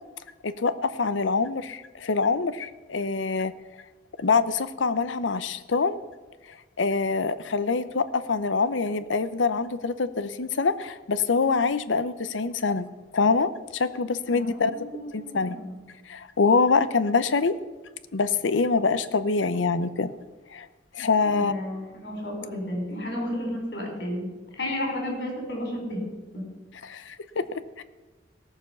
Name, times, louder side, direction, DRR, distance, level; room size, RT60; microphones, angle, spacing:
voice 1, 0.4-3.5 4.2-6.0 6.5-12.9 13.1-14.7 15.1-15.6 16.1-17.5 18.1-20.1 20.5-20.7 20.9-21.5 26.8-27.8, left 4 dB, 90° left, 13 dB, 0.7 m, -25 dB
voice 2, 14.3-15.8 21.2-24.3 24.5-26.0 26.3-26.4, left 1 dB, 65° left, 1 dB, 4.6 m, -32 dB
17.0 x 6.9 x 7.0 m, 1.2 s
head